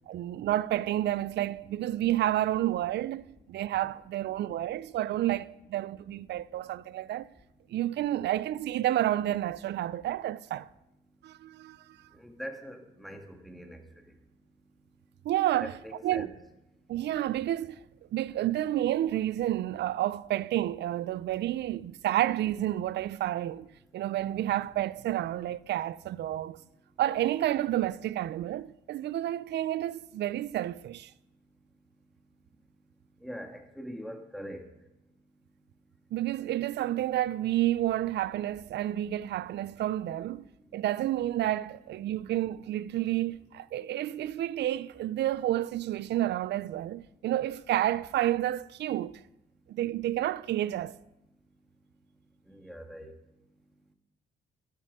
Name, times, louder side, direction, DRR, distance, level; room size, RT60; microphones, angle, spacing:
voice 1, 0.1-7.3 7.7-10.7 11.2-12.0 15.2-15.7 16.0-16.3 16.9-17.8 18.1-23.7 23.9-26.6 27.0-31.1 36.1-40.4 40.7-49.2 49.7-51.0, right 13 dB, 60° right, 0.4 m, -30 dB
voice 2, 12.2-13.8 15.6-16.3 33.2-34.6 52.5-53.1, equal, ahead, 1.7 m, -42 dB
12.0 x 9.3 x 4.7 m
cardioid pair, 90°, 20 cm